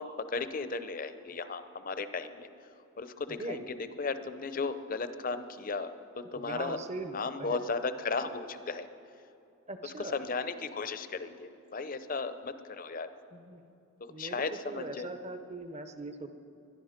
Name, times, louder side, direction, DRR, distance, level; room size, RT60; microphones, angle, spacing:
voice 1, 0.0-2.5 3.0-8.9 9.8-13.1 14.0-15.1, left 4 dB, 40° left, 11 dB, 0.7 m, -36 dB
voice 2, 6.3-7.6 9.7-10.1 13.3-13.7 14.1-14.4 14.7-16.3, right 2 dB, 30° right, 8 dB, 0.9 m, -40 dB
21.0 x 12.0 x 5.1 m, 2.7 s
head